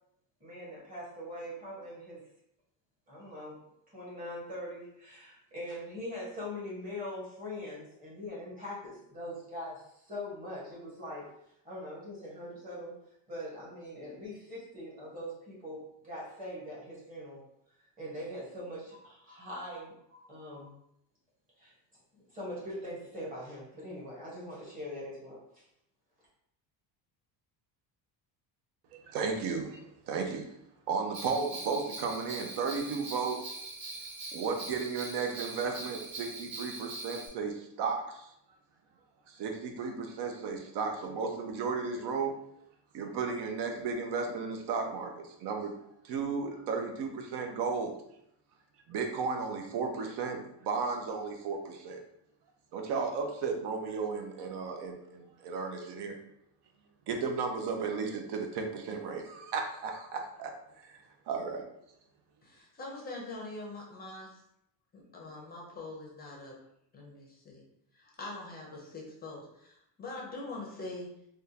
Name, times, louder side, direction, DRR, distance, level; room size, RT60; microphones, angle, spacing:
voice 1, 0.4-2.2 3.1-3.6 3.9-11.2 11.6-12.9 13.3-17.4 18.0-20.7 21.6-21.7 22.3-25.6, left 1 dB, 20° right, -7 dB, 1.2 m, -42 dB
voice 2, 29.0-30.5 30.9-33.7 34.3-38.3 39.3-42.3 42.9-45.7 46.0-48.0 48.9-52.0 52.7-56.1 57.1-61.7, right 5 dB, 60° right, 4 dB, 0.7 m, -34 dB
Bell, 31.1-37.3, right 3 dB, 75° right, 1.3 m, -42 dB
voice 3, 62.4-64.4 64.9-66.6 66.9-67.6 67.9-71.1, left 2 dB, 20° left, -2 dB, 0.5 m, -43 dB
3.5 x 2.3 x 2.7 m, 0.76 s
cardioid pair, 160°, 47 cm